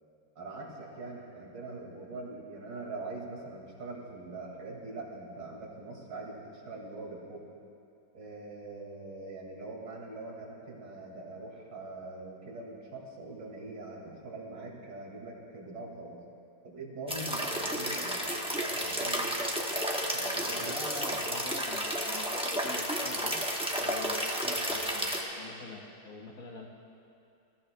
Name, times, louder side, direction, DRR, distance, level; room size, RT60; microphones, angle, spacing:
voice 1, 0.4-7.5 8.1-16.2 16.6-20.6, right 2 dB, 85° right, -3 dB, 2.7 m, -43 dB
sound 1, 17.1-25.2, equal, 5° right, 0.6 m, -32 dB
voice 2, 20.4-26.7, left 2 dB, 55° left, 0 dB, 1.6 m, -45 dB
21.0 x 13.5 x 2.2 m, 2.6 s
omnidirectional pair, 1.9 m